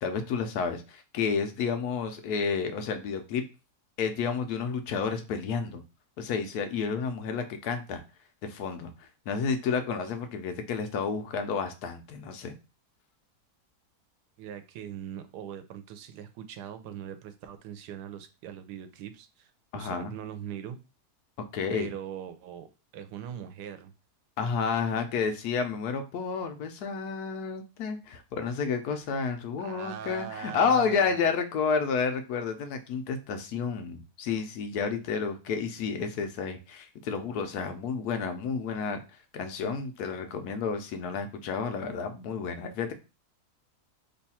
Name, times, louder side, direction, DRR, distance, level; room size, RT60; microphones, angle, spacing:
voice 1, 0.0-3.4 4.0-5.8 6.2-8.0 8.4-12.5 19.7-20.1 21.5-21.9 24.4-39.0 39.3-42.9, left 5 dB, 75° left, 7 dB, 1.1 m, -30 dB
voice 2, 14.4-20.8 21.7-22.7 22.9-23.9 29.6-31.3, right 9 dB, 90° right, 9 dB, 1.2 m, -41 dB
3.2 x 2.3 x 4.1 m, 0.30 s
omnidirectional pair, 1.7 m